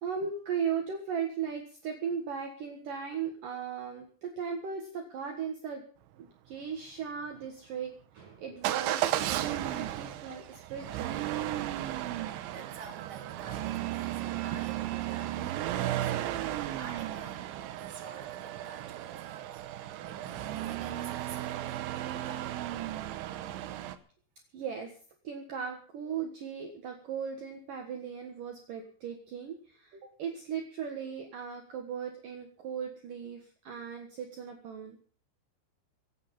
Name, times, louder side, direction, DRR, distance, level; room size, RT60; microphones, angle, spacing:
voice 1, 0.0-5.8 6.1-11.2 24.5-24.9 25.2-35.0, right 7 dB, 60° right, 3 dB, 2.8 m, -37 dB
Motor vehicle (road) / Engine starting / Accelerating revving vroom, 8.6-24.0, right 13 dB, 90° right, 3.4 m, -34 dB
voice 2, 12.5-16.1 16.4-19.6 20.0-22.7, right 5 dB, 25° right, 1 dB, 3.0 m, -50 dB
24.5 x 8.8 x 5.5 m, 0.44 s
omnidirectional pair, 5.2 m